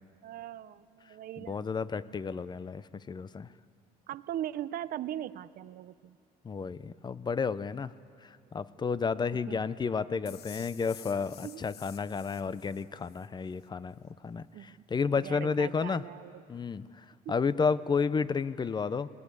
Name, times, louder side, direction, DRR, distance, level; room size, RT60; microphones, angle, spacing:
voice 1, 0.2-1.7 4.1-6.2 9.5-9.6 11.4-11.6 14.5-14.8 15.1-16.5 17.3-17.4, right 12 dB, 60° right, 16 dB, 0.6 m, -40 dB
voice 2, 1.5-3.5 6.4-7.9 8.5-13.9 14.2-16.0 16.5-16.8 17.3-19.1, left 5 dB, 25° left, 16 dB, 0.6 m, -31 dB
sound 1, 10.3-13.3, left 10 dB, 70° left, 1.1 m, -51 dB
21.0 x 19.0 x 8.5 m, 2.3 s
cardioid pair, 110°, 17 cm